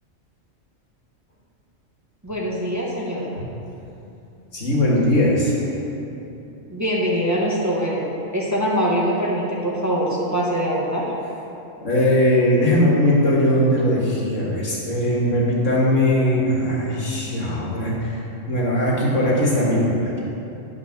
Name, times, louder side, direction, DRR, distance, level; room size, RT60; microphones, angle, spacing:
voice 1, 2.2-3.3 6.7-8.0 8.3-11.1, equal, 15° right, -5 dB, 1.2 m, -23 dB
voice 2, 4.5-5.7 11.8-18.2 18.5-20.2, left 1 dB, 65° left, -5 dB, 2.2 m, -20 dB
10.5 x 5.7 x 5.9 m, 2.9 s
omnidirectional pair, 1.4 m